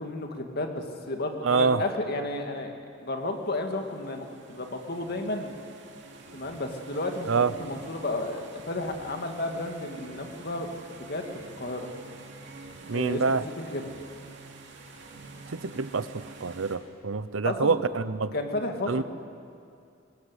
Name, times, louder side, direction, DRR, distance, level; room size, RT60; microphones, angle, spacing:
voice 1, 0.0-2.7 3.0-5.5 6.3-11.9 12.9-13.4 13.7-13.9 17.4-17.8 18.3-19.0, left 2 dB, 50° left, 4 dB, 2.2 m, -32 dB
voice 2, 1.4-1.8 7.3-7.5 12.9-13.4 15.5-18.3 18.9-19.0, right 4 dB, 80° right, 14 dB, 0.8 m, -26 dB
sound 1, 3.3-16.8, right 3 dB, 60° right, 2.7 m, -47 dB
21.5 x 19.0 x 8.2 m, 2.4 s
head